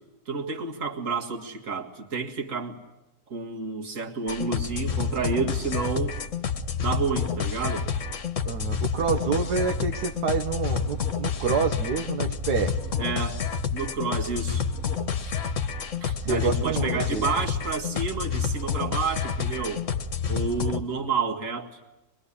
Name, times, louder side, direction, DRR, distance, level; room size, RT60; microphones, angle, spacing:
voice 1, 0.3-2.8 3.3-6.2 6.8-7.9 13.0-13.4 13.7-14.7 15.2-15.4 16.0-19.9 20.3-21.7, right 4 dB, 55° right, 3 dB, 2.3 m, -30 dB
sound 1, 4.3-20.8, left 6 dB, 55° left, 1.4 m, -29 dB
voice 2, 8.4-12.7 16.2-17.3, right 5 dB, 85° right, 5 dB, 1.7 m, -27 dB
23.5 x 22.5 x 9.9 m, 0.98 s
omnidirectional pair, 1.7 m